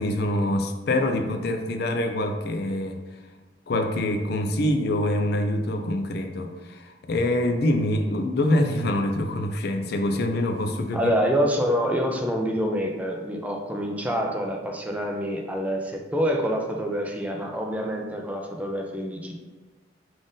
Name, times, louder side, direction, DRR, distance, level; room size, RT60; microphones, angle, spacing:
voice 1, 0.0-3.0 3.7-11.1, left 1 dB, 60° left, 5 dB, 0.4 m, -25 dB
voice 2, 10.9-19.4, equal, 10° right, 1 dB, 0.4 m, -26 dB
3.7 x 2.5 x 3.8 m, 1.3 s
head